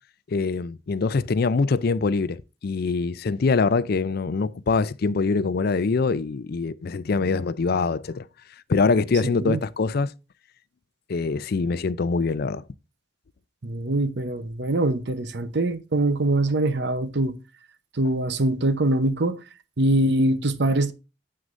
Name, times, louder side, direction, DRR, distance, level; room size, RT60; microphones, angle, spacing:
voice 1, 0.3-8.3 8.7-10.1 11.1-12.6, left 4 dB, 55° left, 0.5 m, -24 dB
voice 2, 9.2-9.6 13.6-17.4 17.9-19.4 19.8-20.9, right 1 dB, 65° right, 0.8 m, -23 dB
9.4 x 7.7 x 2.5 m
head